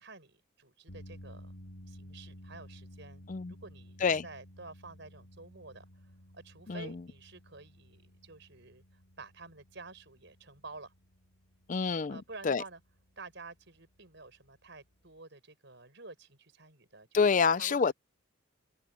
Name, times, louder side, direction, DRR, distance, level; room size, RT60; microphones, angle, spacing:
voice 1, 0.0-1.5 1.9-8.8 9.2-10.9 12.1-12.8 13.2-17.9, right 3 dB, 55° right, 7.2 m, -50 dB
sound 1, 0.9-15.2, equal, 90° left, 6.9 m, -54 dB
voice 2, 11.7-12.2 12.4-12.6 17.1-17.9, left 5 dB, 40° left, 0.4 m, -27 dB
open air
head